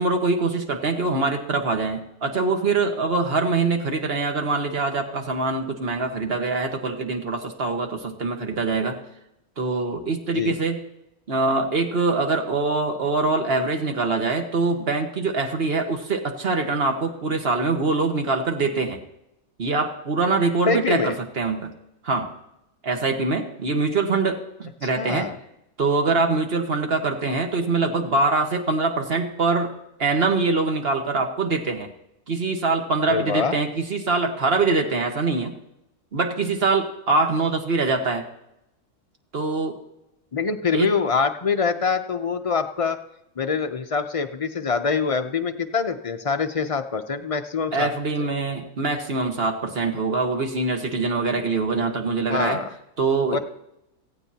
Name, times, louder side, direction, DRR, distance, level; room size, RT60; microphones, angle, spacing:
voice 1, 0.0-9.0 9.6-10.8 11.3-19.0 19.6-21.7 22.0-22.3 22.8-25.3 25.8-29.7 30.0-31.9 32.3-35.5 36.1-38.2 39.3-39.8 40.7-40.9 47.7-52.6 53.0-53.4, right 3 dB, 45° right, 4 dB, 1.6 m, -24 dB
voice 2, 20.7-21.2 25.0-25.4 33.1-33.5 40.3-43.0 43.4-47.9 48.2-48.3 52.3-52.7 53.3-53.4, left 5 dB, 45° left, 7 dB, 0.4 m, -24 dB
17.0 x 15.5 x 2.9 m, 0.85 s
omnidirectional pair, 1.5 m